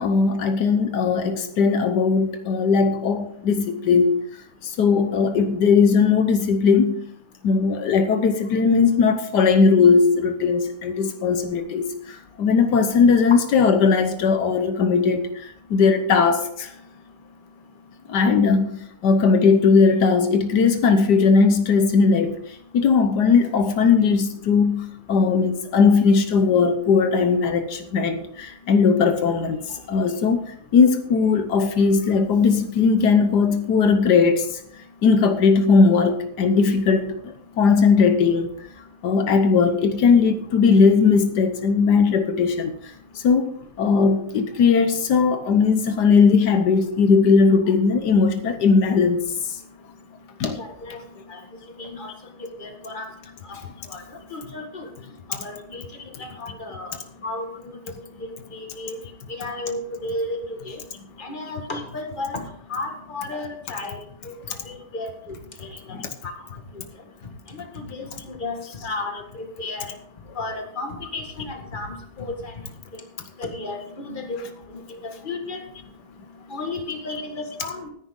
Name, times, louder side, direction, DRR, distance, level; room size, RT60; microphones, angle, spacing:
voice 1, 0.0-4.2 4.6-7.0 7.4-11.9 12.4-16.7 18.1-18.7 19.0-22.4 22.7-34.5 35.0-38.5 39.0-42.7 43.1-43.5 43.8-49.2 50.4-50.6 64.5-64.6 65.9-66.1 74.4-74.5, left 5 dB, 85° left, 1.6 m, -18 dB
voice 2, 50.5-51.0 51.3-51.4 51.8-52.1 52.6-53.1 53.5-53.6 53.9-54.0 54.3-54.9 55.3-55.8 56.2-56.9 57.2-57.5 58.5-59.0 59.4-60.8 61.2-62.4 62.7-64.3 64.7-65.7 66.2-66.3 67.5-69.9 70.4-72.3 72.9-73.0 73.4-74.4 74.9-75.6 76.5-77.9, left 2 dB, 30° left, 2.0 m, -33 dB
14.5 x 9.8 x 3.7 m
omnidirectional pair, 1.7 m